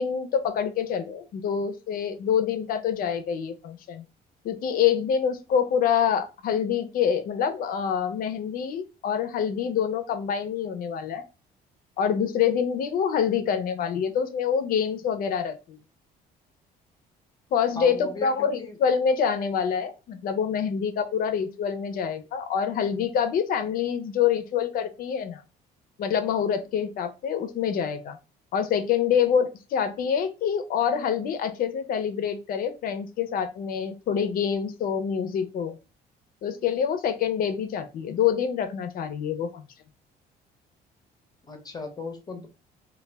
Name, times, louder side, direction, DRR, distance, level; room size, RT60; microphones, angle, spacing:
voice 1, 0.0-4.0 4.4-11.2 12.0-15.8 17.5-25.4 26.0-28.2 28.5-35.8 36.4-39.7, left 7 dB, 60° left, 9 dB, 0.5 m, -26 dB
voice 2, 17.8-18.8 41.4-42.5, left 2 dB, 25° left, 4 dB, 0.7 m, -37 dB
2.3 x 2.1 x 3.3 m, 0.29 s
cardioid pair, 110°, 17 cm